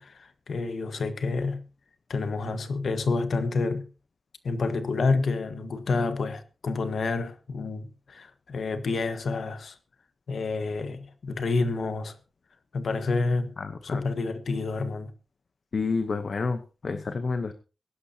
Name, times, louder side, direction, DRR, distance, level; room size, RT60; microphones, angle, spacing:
voice 1, 0.0-1.6 2.1-3.9 4.4-9.8 10.3-12.2 12.7-13.5 13.8-15.1, left 3 dB, 70° left, 1.5 m, -29 dB
voice 2, 13.6-14.0 15.7-17.5, left 4 dB, 50° left, 0.9 m, -29 dB
22.5 x 11.5 x 2.9 m
wide cardioid pair, 140°, 0 cm